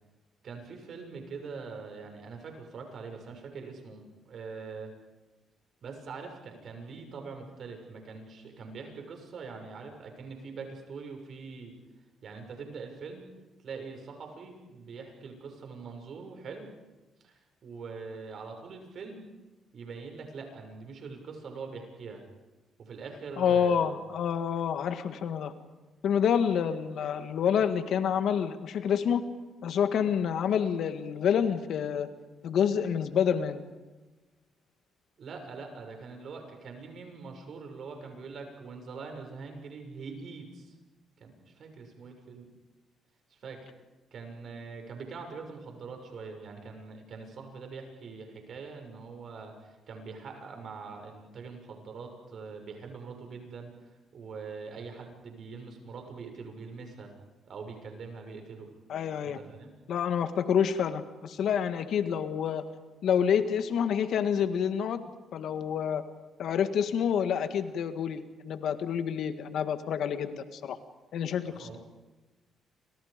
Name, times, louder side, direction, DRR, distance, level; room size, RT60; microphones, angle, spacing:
voice 1, 0.4-4.9 5.8-11.7 12.2-13.2 13.6-16.7 17.2-19.3 19.7-22.2 22.8-24.0 35.2-40.7 41.2-42.5 43.3-43.7 44.1-53.7 54.1-57.1 57.5-58.7 59.2-59.7 71.4-71.8, right 4 dB, 60° right, 4 dB, 6.6 m, -43 dB
voice 2, 23.4-25.5 26.0-29.2 29.6-32.1 32.4-33.6 58.9-59.4 59.9-62.6 63.0-65.0 65.3-66.0 66.4-70.8 71.1-71.8, left 8 dB, 70° left, 9 dB, 1.8 m, -28 dB
30.0 x 26.0 x 5.2 m, 1.2 s
cardioid pair, 90°, 0 cm